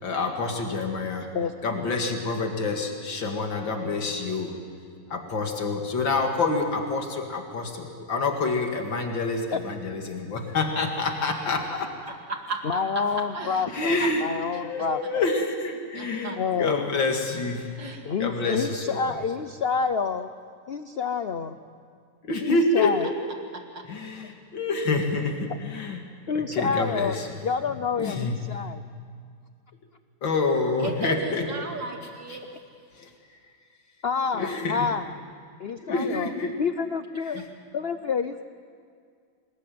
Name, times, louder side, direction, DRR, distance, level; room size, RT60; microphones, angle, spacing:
voice 1, 0.0-1.3 1.6-4.5 5.1-11.9 13.7-14.2 14.5-17.8 18.2-19.2 22.2-23.1 23.9-26.0 26.3-27.3 28.0-28.3 30.2-31.7 32.3-32.4 32.9-33.1 34.3-34.9 35.8-36.5 37.2-37.4, left 3 dB, 85° left, 3 dB, 2.9 m, -27 dB
voice 2, 1.3-1.8 12.6-15.2 16.4-16.9 18.0-20.3 20.7-21.6 22.4-23.1 26.3-27.2 27.4-28.8 34.0-35.1 35.6-36.3 36.6-37.4 37.7-38.4, left 5 dB, 65° left, 10 dB, 0.6 m, -28 dB
voice 3, 12.3-12.8 13.3-13.6 14.0-14.1 14.5-14.6 15.9-16.4 17.8-18.0 23.7-23.9 30.8-32.4, right 3 dB, 75° right, 2 dB, 3.0 m, -34 dB
27.5 x 20.0 x 9.4 m, 2.2 s
omnidirectional pair, 2.0 m